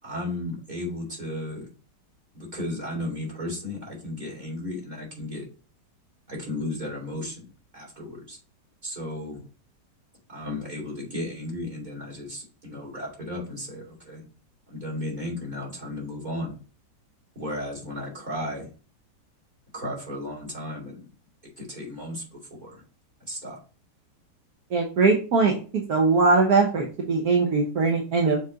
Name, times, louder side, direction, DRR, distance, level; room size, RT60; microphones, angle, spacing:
voice 1, 0.0-1.7 2.3-5.4 6.3-7.4 7.7-8.4 8.8-9.4 10.3-14.2 14.7-16.6 17.3-18.7 19.7-21.1 21.6-22.8 23.3-23.6, left 1 dB, 25° right, -2 dB, 3.0 m, -34 dB
voice 2, 24.7-25.5 25.9-28.4, right 4 dB, 65° right, 1 dB, 1.4 m, -21 dB
7.0 x 3.8 x 3.9 m, 0.37 s
omnidirectional pair, 1.9 m